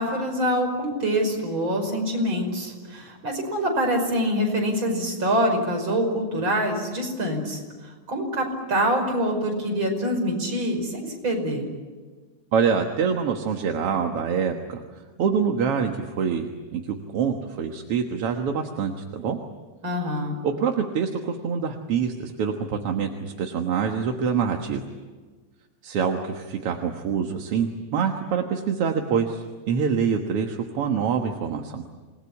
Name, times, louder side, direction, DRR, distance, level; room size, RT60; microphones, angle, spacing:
voice 1, 0.0-7.6 8.1-11.7 19.8-20.4, equal, 40° right, 2 dB, 6.0 m, -25 dB
voice 2, 12.5-14.8 15.2-19.4 20.4-24.8 25.8-31.8, right 6 dB, 55° right, 4 dB, 2.2 m, -25 dB
28.0 x 20.5 x 9.8 m, 1.4 s
omnidirectional pair, 3.4 m